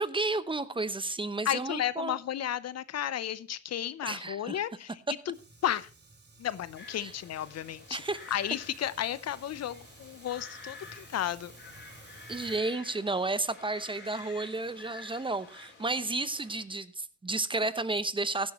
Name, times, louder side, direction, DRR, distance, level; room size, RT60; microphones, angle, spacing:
voice 1, 0.0-2.2 4.0-4.6 7.0-7.1 7.9-8.2 12.3-18.5, right 2 dB, 15° right, 0.8 m, -32 dB
voice 2, 1.4-5.4 5.6-5.9 6.4-8.0 8.3-11.5, left 11 dB, 55° left, 0.7 m, -33 dB
Fire, 5.3-12.6, right 2 dB, 35° right, 3.1 m, -54 dB
sound 1, 6.8-16.6, left 3 dB, 35° left, 4.0 m, -50 dB
16.0 x 11.0 x 3.1 m
cardioid pair, 90°, 30 cm